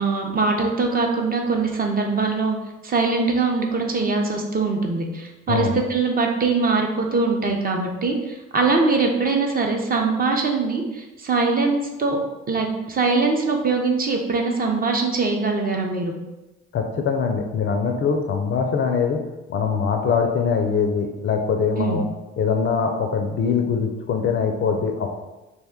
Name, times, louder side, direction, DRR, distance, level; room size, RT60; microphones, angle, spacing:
voice 1, 0.0-2.6 2.8-12.2 12.5-16.1 21.8-22.0, right 3 dB, 25° right, 2 dB, 0.5 m, -22 dB
voice 2, 16.7-19.2 19.5-22.0 22.4-25.1, left 6 dB, 35° left, 3 dB, 0.4 m, -22 dB
2.6 x 2.1 x 3.6 m, 1.0 s
hypercardioid pair, 55°, 34 cm